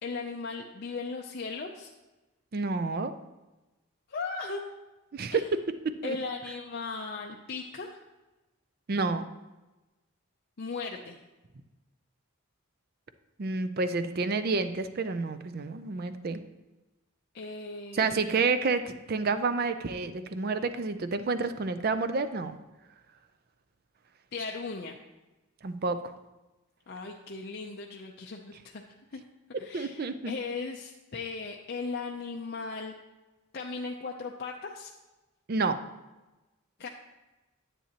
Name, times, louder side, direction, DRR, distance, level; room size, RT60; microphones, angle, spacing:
voice 1, 0.0-1.9 4.1-4.6 5.3-5.5 6.0-8.0 10.6-11.2 17.3-18.5 24.3-25.0 26.9-28.8 29.1-29.2 29.6-32.9 33.5-34.9 36.8-36.9, left 4 dB, 50° left, 1 dB, 0.5 m, -37 dB
voice 2, 2.5-3.1 5.1-5.6 5.8-6.2 8.9-9.3 13.4-16.4 17.9-22.6 25.6-26.1 29.7-30.3 35.5-35.8, right 4 dB, 45° right, 10 dB, 0.4 m, -29 dB
10.0 x 8.4 x 2.9 m, 1.1 s
head